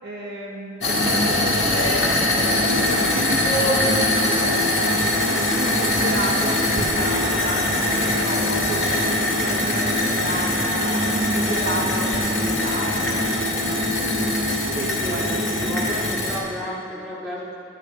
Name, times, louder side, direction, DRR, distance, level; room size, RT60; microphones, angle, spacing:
voice 1, 0.0-9.1 9.4-13.1 14.1-14.4 14.7-15.3 15.7-16.1 16.5-16.6, right 1 dB, 60° right, -4 dB, 1.6 m, -30 dB
sound 1, 0.8-16.4, left 1 dB, 65° left, 1.9 m, -23 dB
sound 2, 2.3-15.9, equal, 30° right, 1.2 m, -29 dB
voice 2, 15.0-17.5, equal, 5° left, -9 dB, 2.3 m, -32 dB
10.5 x 10.0 x 4.4 m, 2.4 s
head